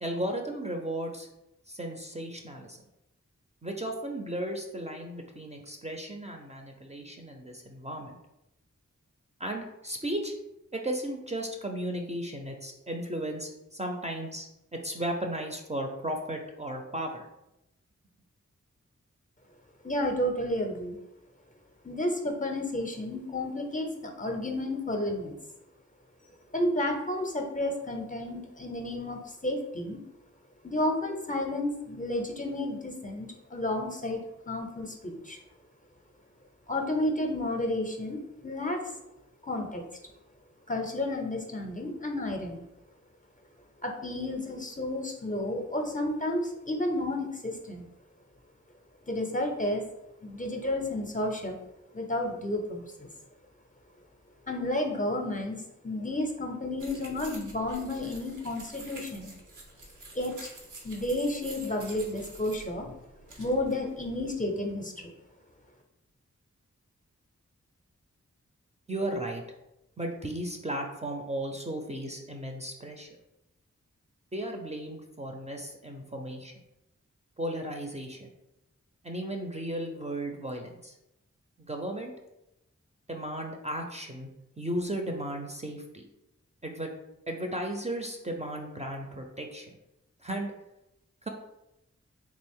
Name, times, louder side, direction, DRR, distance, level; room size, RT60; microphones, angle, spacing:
voice 1, 0.0-1.3 1.7-2.8 3.6-8.2 9.4-10.3 10.7-17.3 68.9-69.4 70.0-73.1 74.3-76.5 77.4-78.3 79.0-80.9 81.6-82.1 83.1-84.3 84.6-86.1 86.6-86.9 87.3-89.8 90.2-90.5 91.2-91.3, right 1 dB, 25° right, 2 dB, 0.5 m, -35 dB
voice 2, 19.8-21.0 21.8-25.3 26.5-30.0 30.6-34.2 34.5-35.4 36.7-38.8 39.4-39.8 40.7-42.7 43.8-47.9 49.1-49.8 50.2-51.6 51.9-53.1 54.5-59.3 60.1-60.5 60.8-62.9 63.4-65.1, left 1 dB, 25° left, 2 dB, 0.5 m, -31 dB
sound 1, 56.8-64.3, right 2 dB, 90° right, 0.8 m, -48 dB
3.4 x 2.4 x 3.5 m, 0.89 s
wide cardioid pair, 65°, 30 cm